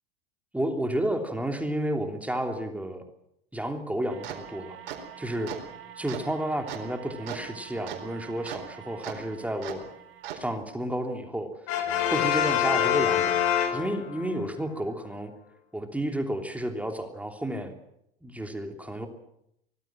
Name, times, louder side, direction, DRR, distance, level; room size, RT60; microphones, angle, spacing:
voice 1, 0.5-3.0 3.5-4.8 5.2-5.5 6.0-9.9 10.3-11.5 12.1-13.4 13.7-15.3 15.7-17.7 18.2-19.1, right 1 dB, 5° right, 5 dB, 3.1 m, -31 dB
sound 1, 4.1-10.4, right 9 dB, 65° right, 4.3 m, -41 dB
Brass instrument, 11.7-14.3, left 9 dB, 50° left, 5.1 m, -25 dB
24.0 x 19.0 x 7.6 m, 0.76 s
hypercardioid pair, 85°, 30 cm